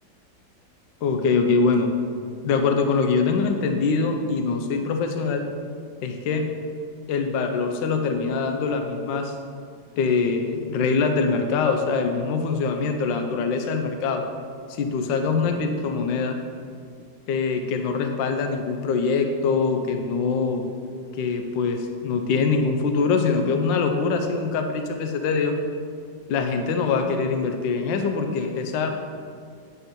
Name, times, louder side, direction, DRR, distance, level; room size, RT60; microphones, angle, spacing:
voice 1, 1.0-1.9 2.4-5.5 6.0-6.5 7.1-9.3 10.0-14.2 14.7-16.4 17.3-20.6 21.1-25.6 26.3-28.9, left 4 dB, 75° left, 5 dB, 1.3 m, -23 dB
9.1 x 4.2 x 5.2 m, 2.2 s
omnidirectional pair, 2.1 m